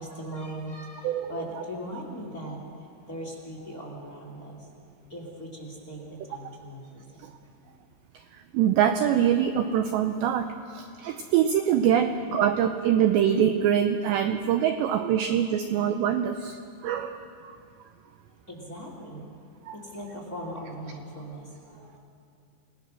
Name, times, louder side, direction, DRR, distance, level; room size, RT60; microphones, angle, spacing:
voice 1, 0.0-4.8 5.1-7.2 7.6-7.7 8.3-8.5 11.1-11.3 12.0-12.1 18.5-19.3 19.7-22.0, equal, 25° left, -1 dB, 2.2 m, -40 dB
voice 2, 8.5-16.6 16.8-17.2 19.7-19.8, right 9 dB, 90° right, 7 dB, 2.4 m, -24 dB
28.0 x 18.5 x 6.3 m, 2.4 s
omnidirectional pair, 6.0 m